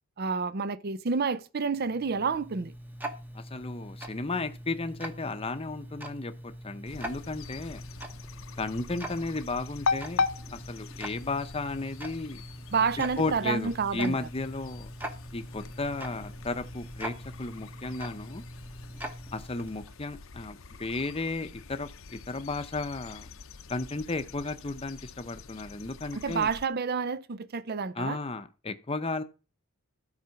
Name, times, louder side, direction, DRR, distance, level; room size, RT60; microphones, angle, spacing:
voice 1, 0.2-2.7 12.7-14.2 26.1-28.2, right 5 dB, 45° right, 0.5 m, -29 dB
Tick-tock, 1.7-20.0, right 1 dB, 10° right, 1.0 m, -43 dB
voice 2, 3.3-7.8 8.6-10.2 10.5-12.4 13.2-14.9 15.3-18.4 19.3-23.3 23.7-26.5 28.0-29.2, left 3 dB, 25° left, 0.7 m, -34 dB
sound 1, 6.9-26.7, left 4 dB, 65° left, 0.8 m, -40 dB
12.5 x 4.9 x 5.8 m
head